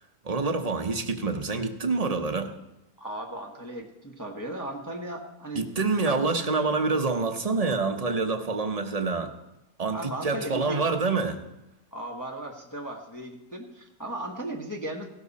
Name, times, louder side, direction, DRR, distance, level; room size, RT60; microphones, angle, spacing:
voice 1, 0.2-2.5 5.5-9.3 9.8-11.4, right 4 dB, 30° right, 5 dB, 0.8 m, -27 dB
voice 2, 3.0-5.6 6.0-6.3 9.9-10.8 11.9-15.1, right 1 dB, 10° left, 1 dB, 1.1 m, -36 dB
16.5 x 12.5 x 4.2 m, 0.91 s
omnidirectional pair, 1.8 m